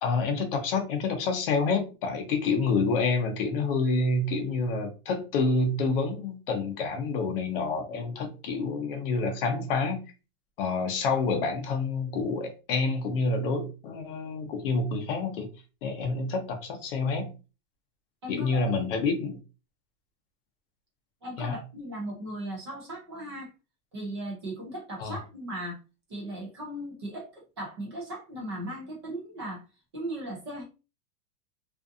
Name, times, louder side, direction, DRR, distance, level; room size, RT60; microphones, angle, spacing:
voice 1, 0.0-10.0 10.6-15.5 15.8-17.3 18.3-19.4 21.4-21.5 25.0-25.2, left 4 dB, 40° left, 0.6 m, -28 dB
voice 2, 18.2-18.8 21.2-23.5 23.9-25.8 26.1-29.6 29.9-30.6, right 1 dB, 20° right, 0.4 m, -37 dB
2.5 x 2.5 x 2.4 m
supercardioid pair, 165°, 45 cm